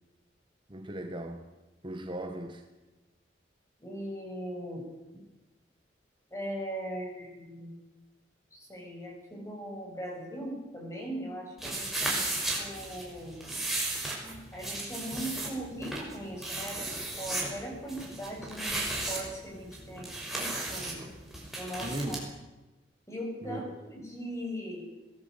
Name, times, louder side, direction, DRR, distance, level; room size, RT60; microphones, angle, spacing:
voice 1, 0.7-1.5 1.8-2.6 21.8-22.3 23.4-23.6, right 1 dB, 25° right, 5 dB, 1.4 m, -37 dB
voice 2, 3.8-4.8 5.1-5.2 6.3-7.8 8.5-13.5 14.5-21.0 21.6-22.2 23.1-24.8, equal, 15° left, -1 dB, 7.5 m, -39 dB
sound 1, 11.6-22.2, right 2 dB, ahead, 5.6 m, -35 dB
22.0 x 17.0 x 8.2 m, 1.1 s
head